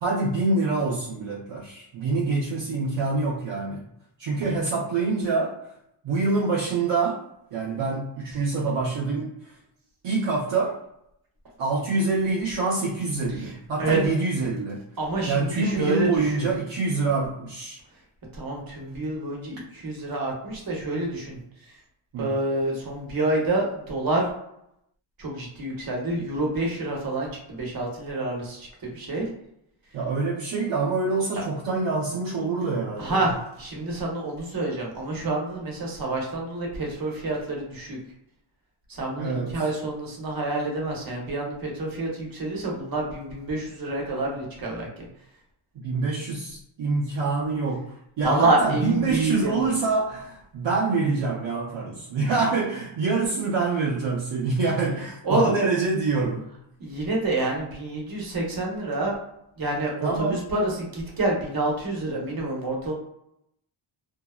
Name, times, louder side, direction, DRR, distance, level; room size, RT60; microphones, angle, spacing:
voice 1, 0.0-3.8 4.2-5.6 6.0-7.2 7.5-9.3 10.0-10.8 11.6-14.8 15.3-17.8 22.1-22.3 29.9-33.3 39.2-39.6 45.8-56.5 60.0-60.4, right 3 dB, 65° right, -3 dB, 0.6 m, -26 dB
voice 2, 15.0-16.5 18.3-21.4 22.2-24.3 25.2-29.3 33.0-38.0 38.9-45.1 48.2-49.6 55.2-55.6 56.8-59.1 59.6-62.9, right 2 dB, 45° right, -2 dB, 0.9 m, -27 dB
2.6 x 2.1 x 2.3 m, 0.77 s
cardioid pair, 90°, 49 cm